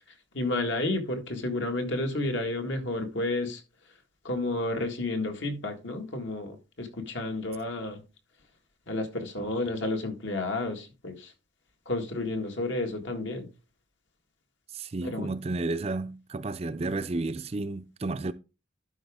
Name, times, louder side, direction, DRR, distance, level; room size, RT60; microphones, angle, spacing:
voice 1, 0.3-3.6 4.2-8.0 8.9-11.3 11.9-13.5 15.0-15.3, left 2 dB, 70° left, 1.7 m, -31 dB
voice 2, 14.7-18.3, right 2 dB, 30° right, 0.4 m, -32 dB
12.0 x 5.0 x 3.5 m
head